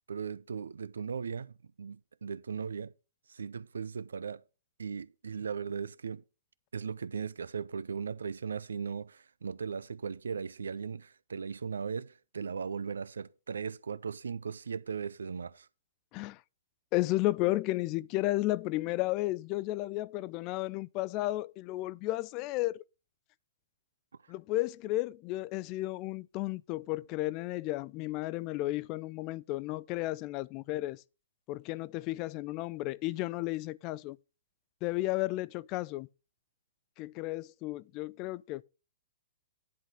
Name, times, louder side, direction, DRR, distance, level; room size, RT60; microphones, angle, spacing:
voice 1, 0.1-2.9 3.3-4.4 4.8-6.2 6.7-15.7, right 6 dB, 75° right, 0.6 m, -38 dB
voice 2, 16.9-22.8 24.3-31.0 31.5-34.2 34.8-36.1 37.0-38.6, left 18 dB, 35° left, 0.4 m, -33 dB
10.5 x 4.0 x 7.6 m
figure-of-eight pair, 115°, 0 cm